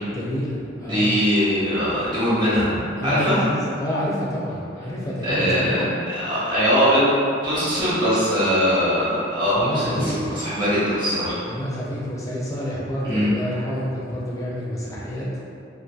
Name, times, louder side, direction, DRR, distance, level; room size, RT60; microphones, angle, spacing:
voice 1, 0.1-1.1 3.0-5.9 9.5-10.4 11.4-15.2, equal, 15° left, -6 dB, 0.4 m, -28 dB
voice 2, 0.8-2.7 3.0-3.4 5.2-5.9 6.1-7.0 7.4-11.4 13.0-13.3, equal, 25° right, -12 dB, 1.0 m, -21 dB
2.6 x 2.4 x 2.3 m, 2.4 s
head